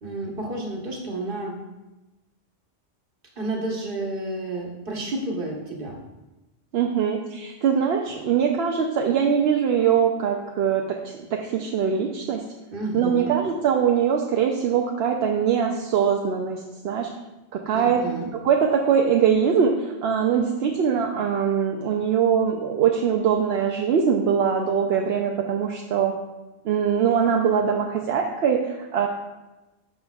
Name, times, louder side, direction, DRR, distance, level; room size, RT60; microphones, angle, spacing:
voice 1, 0.0-1.6 3.4-6.0 12.7-13.4 17.7-18.3, right 2 dB, 45° right, -1 dB, 1.4 m, -30 dB
voice 2, 6.7-12.4 12.9-17.1 17.5-18.0 18.4-26.1 26.6-29.1, right 7 dB, 65° right, 2 dB, 0.8 m, -22 dB
12.0 x 5.2 x 2.4 m, 1.1 s
omnidirectional pair, 1.3 m